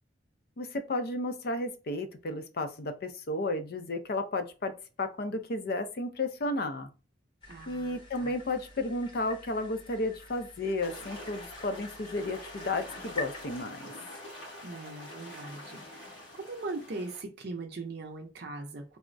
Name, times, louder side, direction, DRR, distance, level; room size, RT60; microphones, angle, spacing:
voice 1, 0.6-4.7 5.0-6.9 7.7-13.9, left 2 dB, 55° left, 0.5 m, -33 dB
sound 1, 7.4-13.6, left 3 dB, 25° left, 0.8 m, -47 dB
voice 2, 7.5-8.3 14.6-19.0, right 3 dB, 55° right, 0.5 m, -40 dB
sound 2, 10.8-17.2, left 1 dB, 85° left, 1.2 m, -46 dB
3.4 x 2.0 x 2.5 m
head